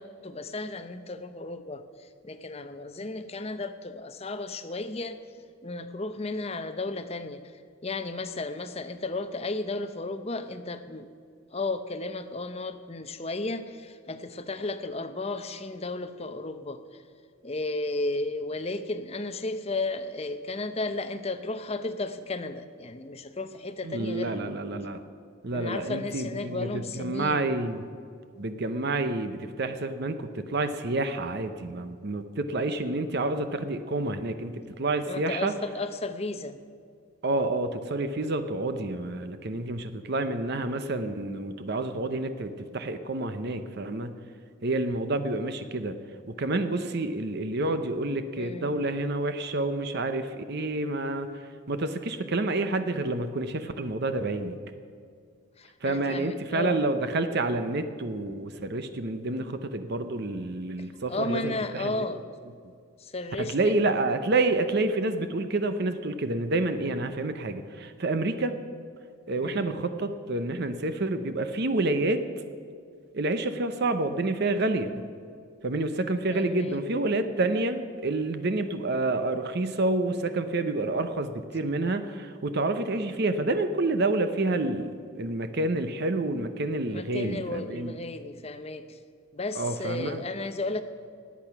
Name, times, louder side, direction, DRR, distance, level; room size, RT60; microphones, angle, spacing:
voice 1, 0.0-5.2 5.6-11.1 11.5-17.0 17.4-24.4 25.5-27.5 35.1-36.6 48.4-48.9 55.6-56.9 60.8-62.3 63.0-63.7 69.4-69.8 76.3-76.8 86.9-89.0 89.3-90.8, left 2 dB, 30° left, 10 dB, 0.6 m, -34 dB
voice 2, 23.8-25.0 25.4-27.8 28.4-35.5 37.2-44.1 44.6-46.0 46.3-54.5 55.8-62.0 63.4-68.6 69.3-72.2 73.1-74.9 75.6-87.9 89.6-90.2, right 2 dB, 50° right, 9 dB, 0.7 m, -28 dB
19.5 x 8.3 x 5.9 m, 2.2 s
head